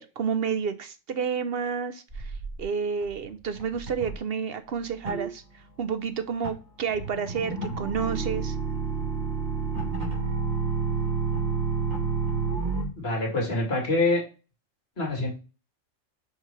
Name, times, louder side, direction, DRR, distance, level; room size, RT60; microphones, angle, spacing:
voice 1, 0.0-2.3 2.6-5.4 5.8-8.6, right 6 dB, 60° right, 11 dB, 0.8 m, -30 dB
sound 1, 2.1-2.6 3.0-3.3 3.6-4.1 5.0-12.9, right 5 dB, 35° right, 3.6 m, -30 dB
voice 2, 13.0-14.2 15.0-15.3, left 2 dB, 50° left, -1 dB, 2.5 m, -25 dB
6.0 x 4.6 x 4.5 m, 0.32 s
omnidirectional pair, 1.3 m